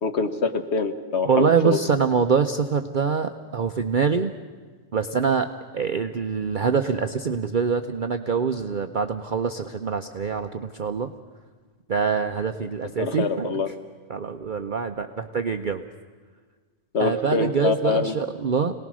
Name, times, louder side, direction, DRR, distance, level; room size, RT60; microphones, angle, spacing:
voice 1, 0.0-1.8 13.0-13.7 16.9-18.1, left 4 dB, 60° left, 7 dB, 1.6 m, -25 dB
voice 2, 1.2-4.3 4.9-5.5 5.7-11.1 11.9-13.6 14.1-15.8 17.0-18.7, right 6 dB, 45° right, 6 dB, 0.8 m, -24 dB
27.5 x 19.0 x 6.2 m, 1.5 s
omnidirectional pair, 1.3 m